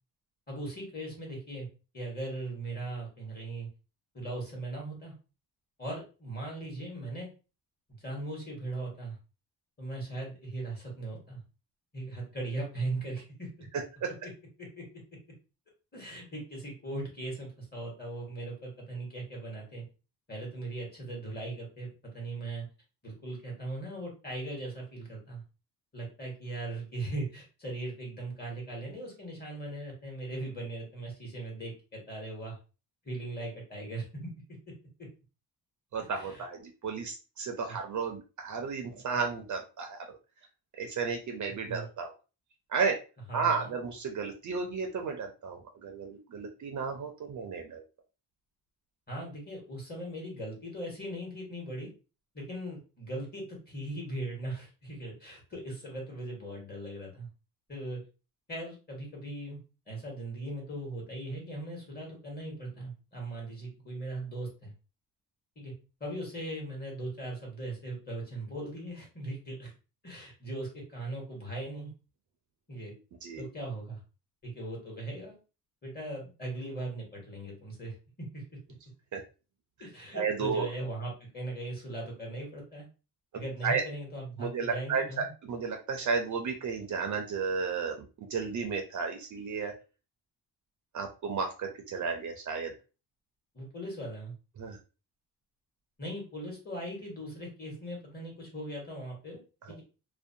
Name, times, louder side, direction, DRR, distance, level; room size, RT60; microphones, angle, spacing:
voice 1, 0.5-1.7 1.9-3.7 4.1-5.1 5.8-7.3 8.0-9.2 9.8-11.4 11.9-13.7 14.0-14.1 14.6-14.8 15.9-19.8 20.3-22.7 23.0-25.4 25.9-32.6 33.0-34.3 36.1-36.4 37.7-37.8 41.6-41.9 43.3-43.7 49.1-51.9 52.3-57.3 57.7-58.0 58.5-59.6 59.9-64.7 65.6-65.7 66.0-69.7 70.0-71.9 72.7-72.9 73.4-74.0 74.4-75.4 75.8-78.4 79.8-82.9 83.3-85.3 93.5-94.3 96.0-99.4 99.7-99.8, right 2 dB, 25° left, -2 dB, 1.2 m, -39 dB
voice 2, 35.9-40.2 40.8-42.1 42.7-43.0 43.3-47.8 73.2-73.4 79.1-79.2 80.1-80.7 83.3-83.8 84.4-85.0 85.4-89.7 90.9-92.7 94.6-94.8 99.7-99.8, right 5 dB, 50° right, 4 dB, 0.4 m, -33 dB
2.5 x 2.1 x 2.6 m, 0.33 s
cardioid pair, 135°, 40 cm